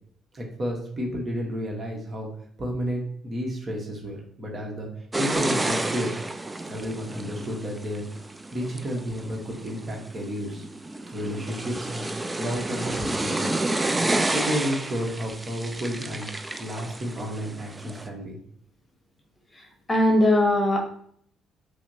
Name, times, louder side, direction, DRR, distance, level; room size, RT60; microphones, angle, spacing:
voice 1, 0.3-2.3 2.6-4.9 5.2-6.2 6.7-8.0 8.5-10.7 11.1-13.6 14.3-16.3 16.6-18.4, equal, 40° right, 0 dB, 1.1 m, -31 dB
sound 1, 5.1-18.1, right 2 dB, 20° right, 0.4 m, -30 dB
voice 2, 19.9-20.8, left 1 dB, 20° left, 2 dB, 1.0 m, -19 dB
5.5 x 2.1 x 2.7 m, 0.63 s
hypercardioid pair, 50°, 0 cm